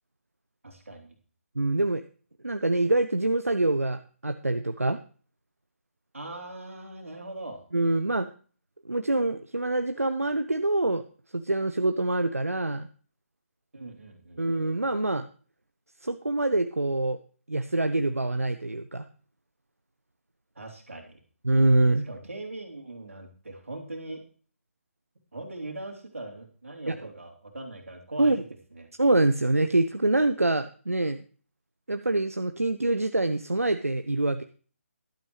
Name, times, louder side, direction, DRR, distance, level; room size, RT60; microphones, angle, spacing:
voice 1, 0.6-1.1 6.1-7.6 13.7-14.5 20.6-21.2 22.1-24.2 25.3-28.3 28.7-28.9, right 2 dB, 70° right, 2 dB, 2.8 m, -40 dB
voice 2, 1.6-2.0 2.4-5.0 7.7-8.3 8.8-11.0 11.3-12.9 14.4-15.2 16.0-17.2 17.5-19.1 21.4-22.1 26.9-27.1 28.2-28.4 29.0-31.2 31.9-34.4, right 2 dB, 85° right, 9 dB, 0.7 m, -25 dB
13.5 x 12.0 x 3.2 m, 0.41 s
figure-of-eight pair, 145°, 8 cm